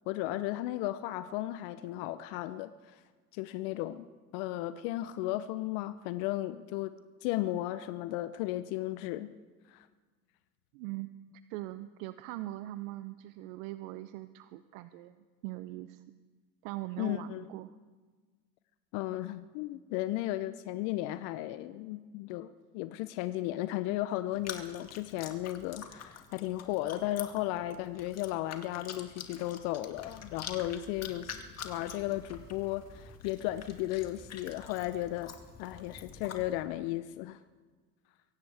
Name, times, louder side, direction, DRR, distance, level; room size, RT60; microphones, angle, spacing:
voice 1, 0.1-3.0 3.3-4.1 4.3-6.9 7.2-9.3 9.7-9.9 17.0-17.5 18.9-31.3 31.6-35.3 35.6-37.4, left 15 dB, 60° left, 12 dB, 0.8 m, -35 dB
voice 2, 10.7-11.1 11.5-16.0 16.6-17.7, right 16 dB, 65° right, 13 dB, 0.8 m, -41 dB
Chewing mastication, 24.3-36.4, left 7 dB, 35° left, 2.2 m, -47 dB
sound 1, 29.9-36.6, left 1 dB, 20° left, 4.5 m, -54 dB
23.5 x 17.0 x 3.5 m, 1.4 s
hypercardioid pair, 80°, 44 cm